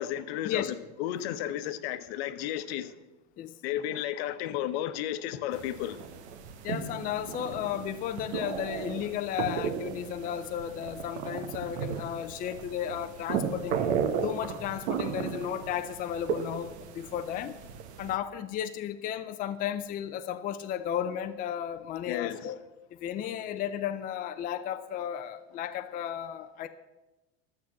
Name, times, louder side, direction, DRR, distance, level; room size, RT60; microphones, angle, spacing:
voice 1, 0.0-2.9 3.6-6.0 22.1-22.5, left 12 dB, 70° left, 1.0 m, -33 dB
sound 1, 5.5-18.2, right 7 dB, 85° right, 1.3 m, -35 dB
voice 2, 6.6-13.9 14.2-17.6 18.0-22.6 23.0-26.7, left 10 dB, 25° left, 0.5 m, -34 dB
12.0 x 7.3 x 7.5 m
supercardioid pair, 150°, 32 cm